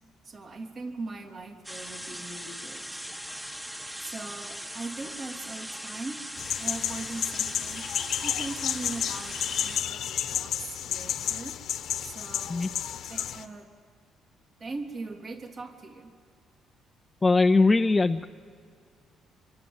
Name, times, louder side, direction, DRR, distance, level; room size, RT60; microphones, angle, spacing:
voice 1, 0.2-2.8 4.0-6.2 6.6-11.6 12.0-12.7 13.1-13.7 14.6-16.1, right 3 dB, 45° right, 3 dB, 3.1 m, -40 dB
sound 1, 1.6-9.8, equal, 10° right, 1.3 m, -40 dB
sound 2, 6.4-13.4, left 10 dB, 70° left, 1.2 m, -31 dB
voice 2, 17.2-18.3, left 3 dB, 20° left, 7 dB, 0.6 m, -21 dB
27.0 x 24.5 x 8.0 m, 2.3 s
cardioid pair, 90°, 0 cm